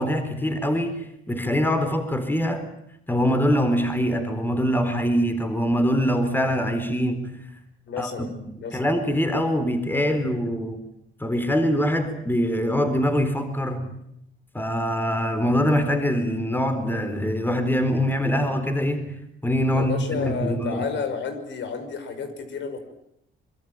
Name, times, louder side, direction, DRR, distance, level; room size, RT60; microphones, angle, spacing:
voice 1, 0.0-2.7 3.1-7.5 8.0-10.8 11.2-14.0 14.5-19.2 19.4-20.8, equal, 10° left, 4.1 m, -24 dB
voice 2, 7.9-8.3 8.6-8.9 19.7-22.8, left 6 dB, 70° left, 5.8 m, -31 dB
25.0 x 23.0 x 9.1 m
cardioid pair, 90°, 20 cm